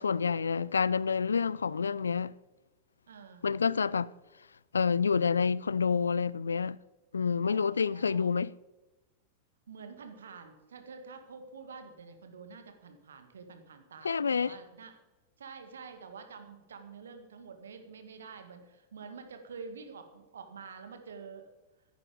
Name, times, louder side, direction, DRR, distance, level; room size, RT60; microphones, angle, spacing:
voice 1, 0.0-2.3 3.4-4.1 4.7-6.8 7.1-8.5 14.0-14.5, left 5 dB, 75° left, 0.3 m, -28 dB
voice 2, 3.1-3.5 7.4-8.3 9.7-15.0 15.4-21.5, right 5 dB, 65° right, 1.8 m, -48 dB
14.5 x 10.5 x 5.1 m
figure-of-eight pair, 90°, 0 cm